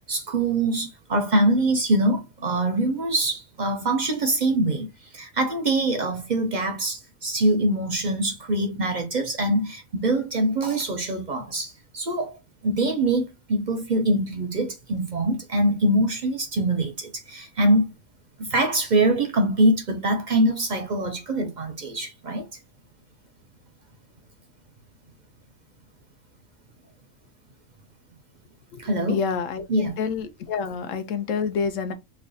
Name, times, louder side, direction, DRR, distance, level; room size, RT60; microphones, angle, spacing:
voice 1, 0.1-4.9 5.1-12.4 12.6-17.9 18.4-22.5 28.8-29.2 29.7-30.0, right 1 dB, 55° right, 0.5 m, -24 dB
voice 2, 29.1-29.7 30.0-31.9, left 6 dB, 75° left, 1.0 m, -27 dB
3.2 x 2.2 x 3.8 m
omnidirectional pair, 1.4 m